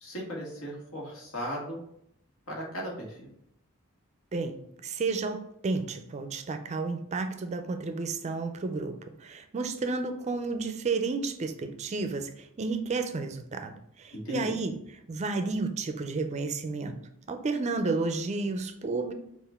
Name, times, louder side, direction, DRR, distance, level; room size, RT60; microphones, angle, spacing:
voice 1, 0.0-1.8 2.5-3.3 14.1-14.5, equal, 80° left, -1 dB, 1.4 m, -36 dB
voice 2, 4.3-17.0 17.3-19.1, right 3 dB, 30° right, 8 dB, 0.4 m, -32 dB
5.6 x 2.5 x 3.4 m, 0.74 s
head